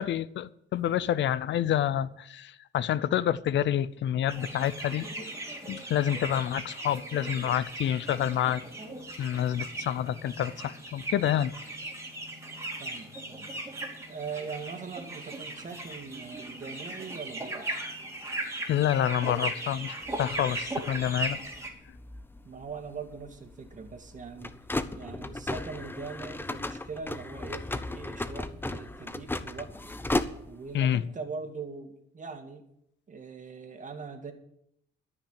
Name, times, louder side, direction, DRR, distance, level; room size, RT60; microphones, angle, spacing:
voice 1, 0.0-5.1 5.7-8.6 9.2-11.5 18.7-21.4 30.7-31.0, left 10 dB, 65° left, 18 dB, 0.6 m, -28 dB
sound 1, 4.3-21.7, right 2 dB, 15° right, 3.0 m, -38 dB
voice 2, 12.8-13.5 14.1-17.7 22.4-24.6 24.9-29.9 30.5-32.6 33.1-34.3, right 5 dB, 40° right, 5 dB, 2.1 m, -41 dB
sound 2, 20.0-30.8, left 2 dB, 10° left, 0.7 m, -36 dB
13.0 x 5.9 x 9.0 m, 0.75 s
cardioid pair, 90°, 20 cm